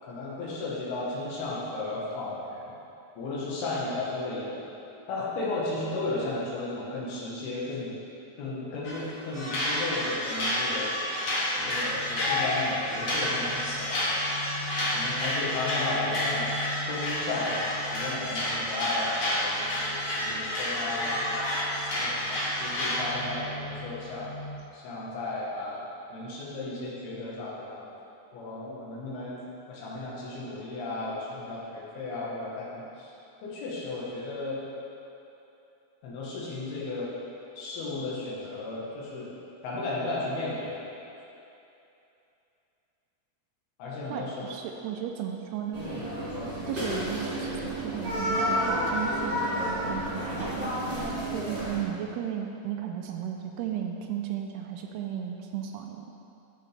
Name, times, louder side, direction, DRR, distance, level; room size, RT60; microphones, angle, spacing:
voice 1, 0.0-2.6 3.2-4.7 5.1-8.0 8.4-11.0 11.5-14.1 14.9-16.6 16.9-21.5 22.0-24.3 24.7-27.8 28.3-29.4 29.7-33.1 33.4-34.6 36.0-37.1 37.6-39.3 39.6-40.7 43.8-44.5 45.9-46.6, left 2 dB, 70° left, -6 dB, 3.0 m, -34 dB
sound 1, 8.8-9.1 9.3-23.1, left 1 dB, 55° left, 1.5 m, -29 dB
sound 2, 11.5-24.6, left 1 dB, 35° left, 2.1 m, -42 dB
voice 2, 44.1-45.9 46.7-50.8 51.3-56.2, right 9 dB, 80° right, 3 dB, 2.4 m, -35 dB
sound 3, 45.7-51.8, equal, 35° right, 0.8 m, -30 dB
14.0 x 5.8 x 3.3 m, 2.8 s
omnidirectional pair, 4.9 m